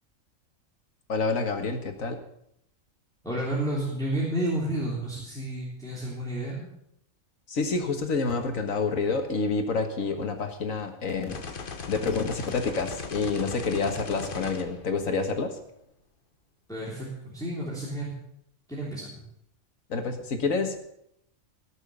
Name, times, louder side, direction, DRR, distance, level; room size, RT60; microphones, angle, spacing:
voice 1, 1.1-2.2 7.5-11.4 11.9-15.6 19.9-20.8, left 4 dB, 85° left, 5 dB, 2.0 m, -28 dB
voice 2, 3.2-6.7 16.7-18.1 18.7-19.3, right 1 dB, 5° left, -6 dB, 3.2 m, -31 dB
sound 1, 11.3-15.5, left 5 dB, 45° left, 1.2 m, -38 dB
18.0 x 6.8 x 6.8 m, 0.76 s
omnidirectional pair, 1.4 m